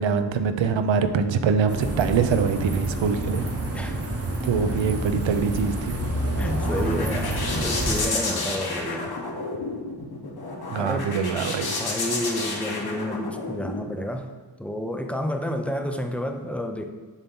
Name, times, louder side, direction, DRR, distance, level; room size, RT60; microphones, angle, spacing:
voice 1, 0.0-3.4 4.4-6.0 10.7-11.7, right 6 dB, 70° right, 9 dB, 0.6 m, -24 dB
sound 1, 1.7-8.0, right 1 dB, 30° right, 0.9 m, -28 dB
sound 2, 5.9-13.8, left 3 dB, 50° left, 1.1 m, -31 dB
voice 2, 6.4-9.2 10.8-11.2 11.8-14.3 14.6-16.9, left 1 dB, 5° left, 5 dB, 0.4 m, -30 dB
7.0 x 2.9 x 5.3 m, 1.4 s
wide cardioid pair, 120°, 47 cm